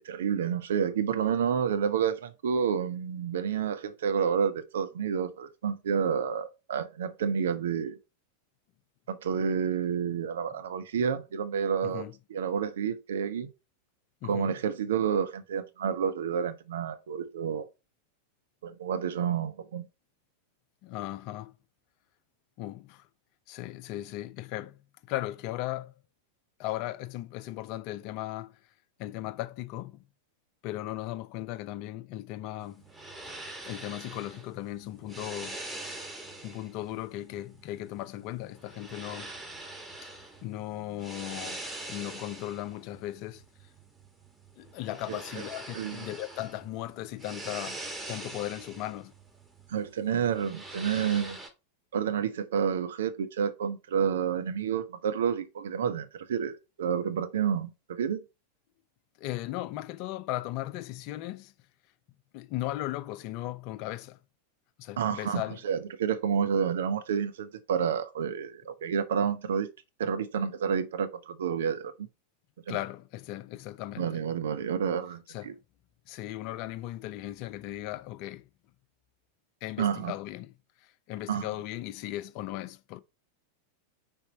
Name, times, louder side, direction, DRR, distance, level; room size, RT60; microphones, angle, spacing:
voice 1, 0.0-8.0 9.1-12.0 12.3-13.5 14.3-17.7 18.6-19.8 45.1-45.2 45.7-46.1 49.7-51.4 51.9-58.2 65.0-69.7 70.0-72.1 72.7-72.8 74.0-75.5 79.8-80.1 81.3-81.5, right 7 dB, 60° right, 0.8 m, -29 dB
voice 2, 11.8-12.2 14.2-14.6 20.8-21.6 22.6-23.1 23.5-25.9 26.6-28.6 29.0-30.0 30.6-32.9 33.6-35.6 36.4-39.3 40.4-41.6 41.9-43.4 44.6-47.8 48.1-49.1 59.2-61.5 62.3-64.2 64.8-65.6 72.7-74.2 75.3-75.6 76.1-78.5 79.6-80.5 80.8-83.0, left 15 dB, 45° left, 0.5 m, -37 dB
sound 1, 32.6-51.5, right 2 dB, 10° right, 1.4 m, -44 dB
5.4 x 4.2 x 4.3 m
figure-of-eight pair, 90°, 0 cm